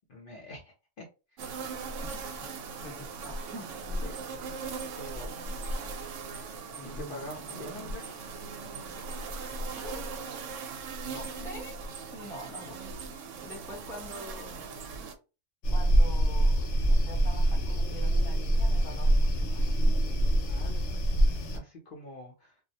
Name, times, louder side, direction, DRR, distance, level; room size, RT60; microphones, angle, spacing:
voice 1, 0.1-1.1 1.3-1.6 4.0-4.6 4.9-5.5 6.8-8.1 11.1-11.4 20.5-22.6, left 1 dB, 55° left, 0.7 m, -45 dB
sound 1, 1.4-15.1, right 3 dB, 90° right, 0.9 m, -39 dB
voice 2, 2.0-2.4 2.8-3.7 4.0-4.1 6.8-8.0 9.7-10.4 11.4-11.8 12.1-14.6 15.7-19.9, equal, 5° left, 0.7 m, -46 dB
sound 2, 15.6-21.6, right 1 dB, 80° left, 0.9 m, -24 dB
2.3 x 2.0 x 2.7 m
omnidirectional pair, 1.2 m